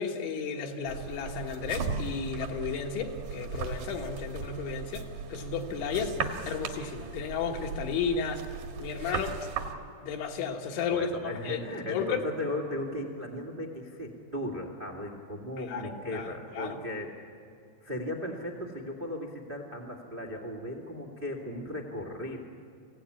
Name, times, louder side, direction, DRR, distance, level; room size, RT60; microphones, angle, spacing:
voice 1, 0.0-6.2 6.5-8.4 8.8-9.5 10.0-12.3 15.6-16.8, left 6 dB, 75° left, 3 dB, 3.9 m, -33 dB
sound 1, 0.9-9.7, right 6 dB, 60° right, 2.6 m, -37 dB
voice 2, 10.9-17.1 17.8-22.4, left 1 dB, 35° right, 1 dB, 0.8 m, -36 dB
24.5 x 16.5 x 9.8 m, 2.6 s
omnidirectional pair, 5.4 m